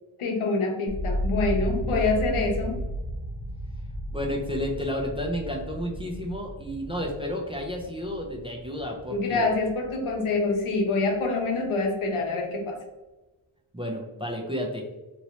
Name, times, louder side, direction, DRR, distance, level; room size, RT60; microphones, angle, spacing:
voice 1, 0.2-2.8 9.1-12.8, left 3 dB, 85° left, 2 dB, 0.8 m, -26 dB
sound 1, 0.9-10.9 11.1-11.9, equal, 35° left, 0.9 m, -34 dB
voice 2, 4.1-9.5 13.7-14.9, equal, 15° right, -1 dB, 0.4 m, -31 dB
3.0 x 2.9 x 2.7 m, 1.1 s
wide cardioid pair, 125°, 48 cm